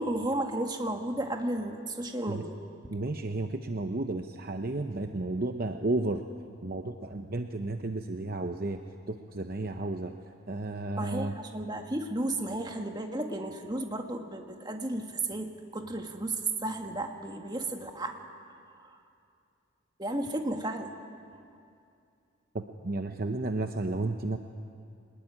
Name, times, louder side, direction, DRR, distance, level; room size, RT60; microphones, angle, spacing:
voice 1, 0.0-2.6 11.0-16.4 16.6-18.2 18.7-19.0 20.0-20.9, right 1 dB, 20° right, 4 dB, 1.7 m, -33 dB
voice 2, 2.9-6.2 6.6-8.8 9.1-10.1 10.5-11.3 22.5-24.4, right 2 dB, 45° right, 6 dB, 0.8 m, -32 dB
24.0 x 20.0 x 9.9 m, 2.5 s
head